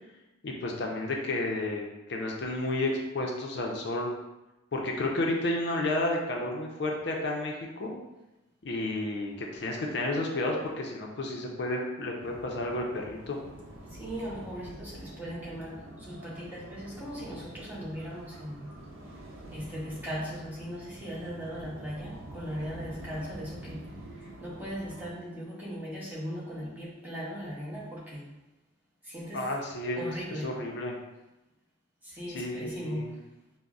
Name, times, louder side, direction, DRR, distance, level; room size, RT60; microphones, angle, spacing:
voice 1, 0.4-4.1 4.7-7.5 7.8-7.9 8.6-13.4 29.3-30.0 30.3-30.9 32.3-33.1, left 2 dB, 60° left, 0 dB, 0.5 m, -31 dB
sound 1, 12.2-25.1, right 1 dB, 85° right, 0.6 m, -46 dB
voice 2, 13.9-18.7 19.5-28.3 29.0-29.5 30.0-30.6 32.0-33.2, equal, 10° right, -6 dB, 0.7 m, -38 dB
5.1 x 2.0 x 2.3 m, 0.97 s
head